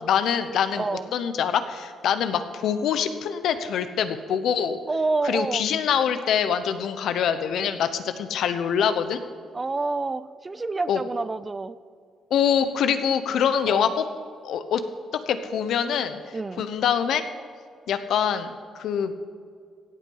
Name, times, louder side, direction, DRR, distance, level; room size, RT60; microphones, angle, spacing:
voice 1, 0.0-4.8 5.2-9.2 10.9-11.0 12.3-14.1 14.4-14.8 15.3-16.2 16.6-17.2 17.9-19.1, left 8 dB, 75° left, 10 dB, 0.9 m, -24 dB
voice 2, 0.8-1.1 4.9-5.7 9.5-11.8 13.7-14.0 16.3-16.6, right 3 dB, 25° right, 15 dB, 0.5 m, -28 dB
16.0 x 8.3 x 5.6 m, 2.1 s
cardioid pair, 90°, 0 cm